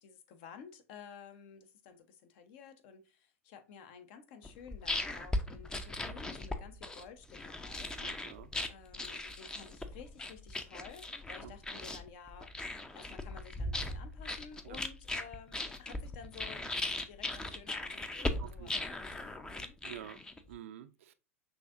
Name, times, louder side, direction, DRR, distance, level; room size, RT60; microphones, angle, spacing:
voice 1, 0.0-7.9 8.7-12.5 12.9-16.7 17.0-19.8, left 6 dB, 55° left, 0.7 m, -53 dB
sound 1, 4.4-20.5, left 2 dB, 10° left, 0.4 m, -39 dB
voice 2, 8.0-8.5 11.4-11.5 14.6-14.8 18.4-18.7 19.8-21.1, right 11 dB, 70° right, 0.4 m, -49 dB
6.0 x 2.7 x 2.5 m
hypercardioid pair, 100°, 8 cm